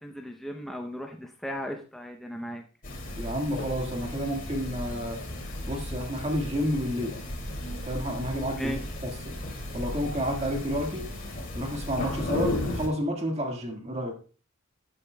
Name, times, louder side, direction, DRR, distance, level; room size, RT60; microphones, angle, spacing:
voice 1, 0.0-2.6 8.6-8.8, equal, ahead, 2 dB, 0.7 m, -36 dB
sound 1, 2.8-12.9, left 1 dB, 45° left, 2.6 m, -35 dB
voice 2, 3.1-5.2 5.7-7.2 7.8-9.4 9.7-11.0 11.5-14.2, equal, 30° right, 2 dB, 1.7 m, -30 dB
14.0 x 8.5 x 2.2 m, 0.37 s
head